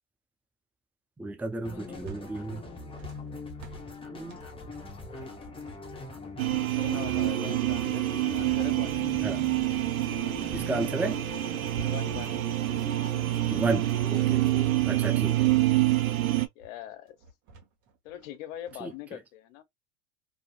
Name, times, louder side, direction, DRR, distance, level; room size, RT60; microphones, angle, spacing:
voice 1, 1.2-2.6 4.1-4.4 9.2-9.5 10.5-11.2 13.5-14.4 14.9-15.5 18.8-18.9, right 2 dB, 5° right, 0.3 m, -32 dB
sound 1, 1.6-14.7, left 3 dB, 15° left, 0.9 m, -42 dB
voice 2, 1.7-2.5 6.7-9.0 11.8-12.4 15.5-15.7 16.6-17.2 18.0-19.6, left 12 dB, 65° left, 0.7 m, -42 dB
sound 2, 1.7-9.9 10.2-19.0, right 2 dB, 45° right, 1.1 m, -49 dB
sound 3, 6.4-16.5, right 15 dB, 90° right, 0.5 m, -27 dB
2.6 x 2.6 x 2.3 m
hypercardioid pair, 90°, 40 cm